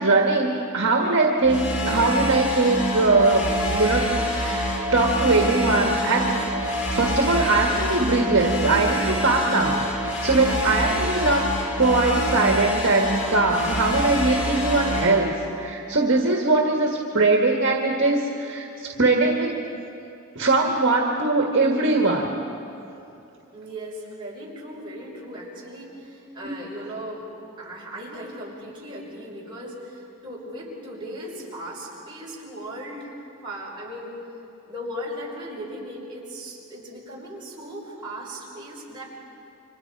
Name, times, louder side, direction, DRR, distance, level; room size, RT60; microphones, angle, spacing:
voice 1, 0.0-6.3 6.9-11.5 11.8-19.6 20.4-22.3 26.4-26.5, right 3 dB, 55° right, 1 dB, 1.8 m, -21 dB
sound 1, 1.4-15.2, equal, 90° left, 5.0 m, -26 dB
voice 2, 6.2-7.0 23.5-27.2 27.6-33.1 33.4-34.1 34.7-39.0, equal, 20° right, -5 dB, 5.5 m, -37 dB
30.0 x 25.5 x 4.8 m, 2.8 s
head